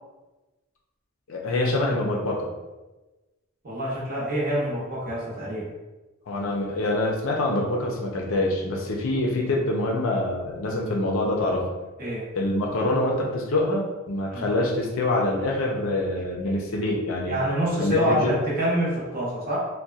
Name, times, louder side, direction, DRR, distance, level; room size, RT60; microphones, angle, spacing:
voice 1, 1.3-2.5 6.3-11.7 12.4-17.4 17.8-18.3, left 1 dB, 65° left, -1 dB, 0.5 m, -25 dB
voice 2, 3.6-5.7 12.0-12.2 14.3-14.5 17.3-19.7, right 1 dB, 40° right, -6 dB, 0.8 m, -26 dB
2.7 x 2.2 x 2.3 m, 1.1 s
head